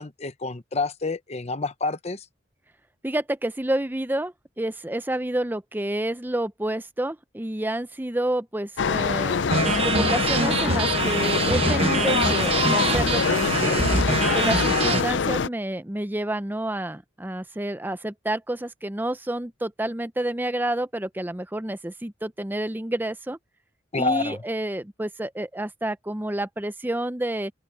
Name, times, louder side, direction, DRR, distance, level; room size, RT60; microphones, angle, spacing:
voice 1, 0.0-2.2 23.9-24.4, left 3 dB, 35° left, 0.9 m, -28 dB
voice 2, 3.0-13.8 14.3-23.4 23.9-27.5, right 1 dB, 10° right, 0.6 m, -29 dB
sound 1, 8.8-15.5, left 5 dB, 70° left, 0.5 m, -24 dB
sound 2, 9.5-15.0, right 3 dB, 30° right, 1.0 m, -24 dB
head